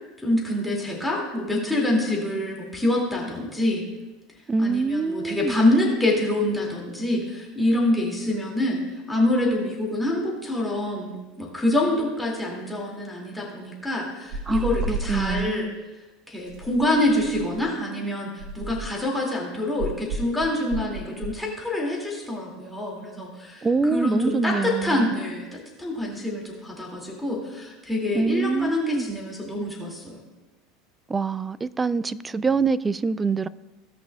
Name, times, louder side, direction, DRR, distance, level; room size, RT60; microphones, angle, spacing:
voice 1, 0.2-3.8 4.6-15.7 16.3-30.2, left 1 dB, 5° left, 2.4 m, -26 dB
voice 2, 4.5-5.6 14.5-15.7 23.6-25.1 28.1-29.1 31.1-33.5, right 4 dB, 20° right, 0.4 m, -25 dB
sound 1, 14.3-15.5 16.5-17.7 18.4-19.1 19.8-21.4, right 2 dB, 55° right, 2.1 m, -32 dB
17.5 x 6.0 x 2.4 m
hypercardioid pair, 80°, 0 cm